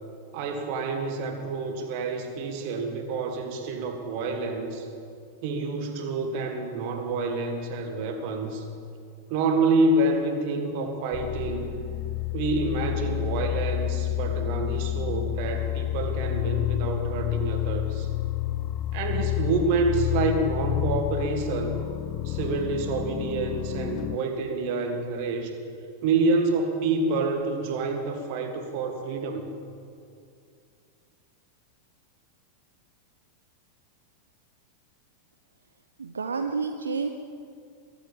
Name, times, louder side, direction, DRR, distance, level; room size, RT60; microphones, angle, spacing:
voice 1, 0.3-4.9 5.4-8.7 9.3-11.7 12.3-18.1 18.9-21.9 22.2-25.6 26.0-29.5, right 3 dB, 45° right, 5 dB, 1.9 m, -28 dB
sound 1, 11.1-24.2, left 15 dB, 40° left, 0.4 m, -29 dB
voice 2, 36.0-37.1, right 4 dB, 75° right, 6 dB, 0.7 m, -29 dB
22.0 x 8.2 x 7.4 m, 2.4 s
figure-of-eight pair, 90°, 0 cm